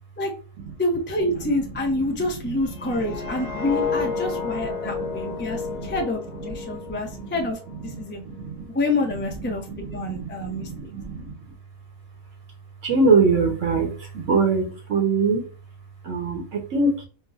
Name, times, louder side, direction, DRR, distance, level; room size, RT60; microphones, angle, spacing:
voice 1, 0.8-8.2 8.7-10.9, left 2 dB, 15° left, 0 dB, 0.5 m, -27 dB
sound 1, 2.7-7.7 8.1-8.4, left 6 dB, 90° left, 1.2 m, -31 dB
voice 2, 2.8-3.6 4.2-6.0 6.9-7.5 7.9-8.7 9.2-11.3 12.8-15.5 16.0-17.1, right 4 dB, 65° right, 3 dB, 1.2 m, -25 dB
4.7 x 2.2 x 2.4 m, 0.36 s
omnidirectional pair, 1.4 m